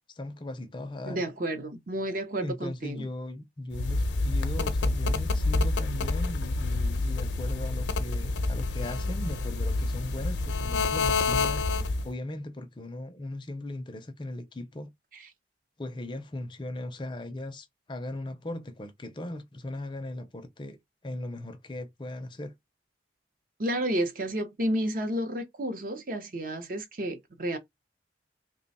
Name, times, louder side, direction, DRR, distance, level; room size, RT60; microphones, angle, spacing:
voice 1, 0.1-1.2 2.4-11.6 12.0-14.9 15.8-20.8 21.0-22.5, left 1 dB, 25° left, 0.5 m, -38 dB
voice 2, 1.1-3.1 15.1-15.2 23.6-27.6, right 1 dB, 50° right, 0.7 m, -31 dB
sound 1, 3.7-12.1, left 3 dB, 90° left, 0.6 m, -28 dB
3.2 x 2.2 x 4.0 m
head